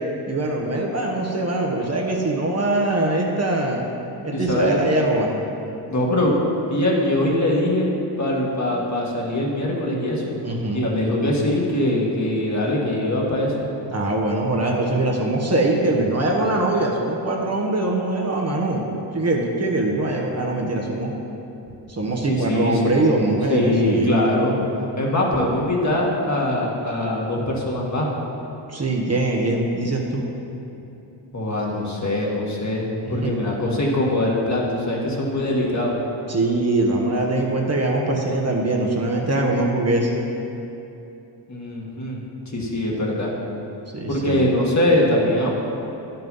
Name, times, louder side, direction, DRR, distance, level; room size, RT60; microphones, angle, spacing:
voice 1, 0.3-3.9 4.2-5.3 10.4-10.8 13.9-21.1 21.9-24.2 28.7-30.2 33.0-33.3 36.3-40.1 43.9-44.5, right 2 dB, 35° right, -1 dB, 1.2 m, -22 dB
voice 2, 4.3-4.8 5.9-6.3 6.7-7.9 8.2-10.3 10.7-13.5 22.3-22.8 23.5-24.6 25.0-28.1 31.3-35.9 41.5-42.2 42.5-43.3 44.1-45.5, left 1 dB, 40° left, -3 dB, 1.9 m, -22 dB
10.5 x 5.8 x 5.5 m, 2.9 s
cardioid pair, 80°, 45 cm